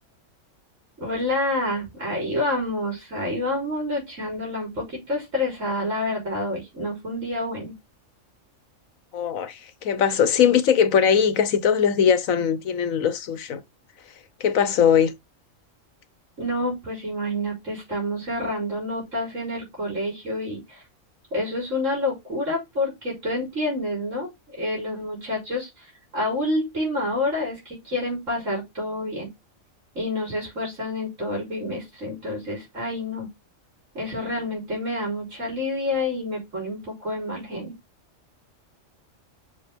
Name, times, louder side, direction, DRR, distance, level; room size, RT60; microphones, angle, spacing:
voice 1, 1.0-7.7 16.4-20.8 21.3-24.3 24.6-25.9 26.1-29.3 29.9-33.3 33.9-37.7, left 1 dB, 70° right, 4.6 m, -28 dB
voice 2, 9.1-13.6 14.4-15.1, left 7 dB, 90° left, 1.4 m, -20 dB
6.5 x 5.5 x 3.6 m
omnidirectional pair, 1.4 m